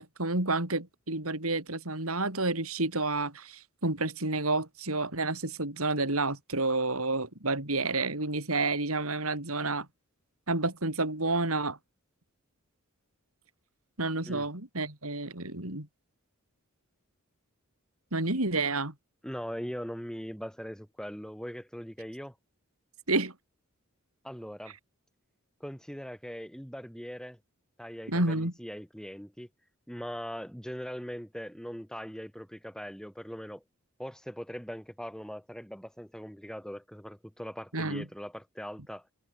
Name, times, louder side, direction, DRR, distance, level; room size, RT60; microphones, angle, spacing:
voice 1, 0.0-9.9 10.5-11.8 14.0-15.9 18.1-18.9 23.1-23.3 28.1-28.5 37.7-38.0, right 2 dB, 85° right, 5.8 m, -30 dB
voice 2, 19.2-22.3 24.2-24.7 25.6-27.4 27.8-29.5 29.9-33.6 34.0-39.1, equal, 5° left, 7.7 m, -40 dB
head